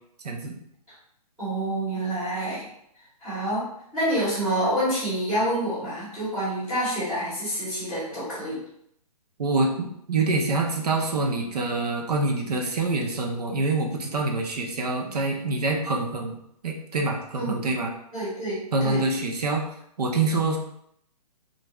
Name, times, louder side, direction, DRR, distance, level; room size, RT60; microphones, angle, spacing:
voice 1, 0.2-0.6 9.4-16.4 16.6-17.9 18.7-19.6 20.0-20.6, right 3 dB, 75° right, 1 dB, 0.7 m, -26 dB
voice 2, 1.4-2.7 3.2-3.6 3.9-8.6 17.3-17.6 18.1-19.0, right 1 dB, 5° right, -16 dB, 1.1 m, -27 dB
2.5 x 2.3 x 3.1 m, 0.73 s
hypercardioid pair, 175°, 20 cm